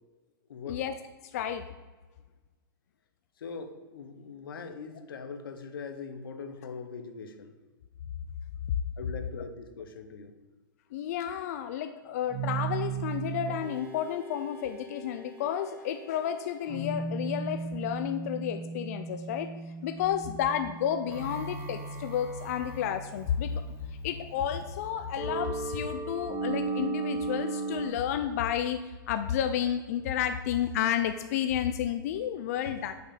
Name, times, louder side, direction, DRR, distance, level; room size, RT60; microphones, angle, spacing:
voice 1, 1.2-1.7 10.9-19.5 19.8-23.6 24.0-32.9, left 9 dB, 45° left, 9 dB, 0.5 m, -31 dB
voice 2, 3.4-7.5 9.0-10.3 32.6-32.8, left 5 dB, 85° left, 8 dB, 1.1 m, -41 dB
sound 1, 12.3-27.9, right 4 dB, 20° right, 1.7 m, -37 dB
6.5 x 5.5 x 6.7 m, 1.3 s
supercardioid pair, 165°, 12 cm